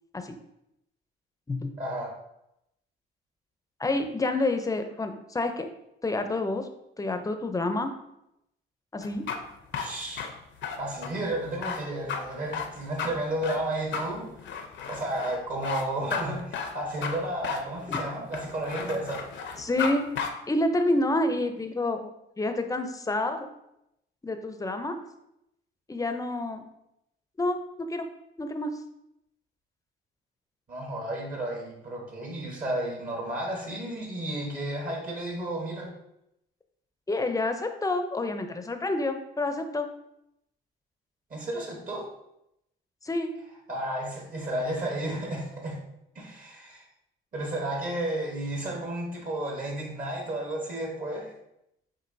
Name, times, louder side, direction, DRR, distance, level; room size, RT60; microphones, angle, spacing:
voice 1, 1.8-2.1 9.8-10.3 10.8-14.3 14.9-19.3 30.7-35.9 41.3-42.1 43.7-45.8 46.1-46.8 47.3-51.3, right 1 dB, 45° right, 0 dB, 1.2 m, -32 dB
voice 2, 3.8-5.7 6.0-6.7 7.0-7.9 8.9-9.3 17.9-18.0 19.6-20.1 20.5-22.1 22.4-23.5 24.2-25.0 25.9-26.6 27.4-28.1 28.4-28.7 37.1-39.9 43.0-43.3, left 2 dB, 15° left, 7 dB, 0.5 m, -28 dB
sound 1, 9.0-19.9 20.2-20.3, left 6 dB, 65° left, 0.6 m, -34 dB
7.6 x 2.6 x 2.6 m, 0.82 s
cardioid pair, 90°, 20 cm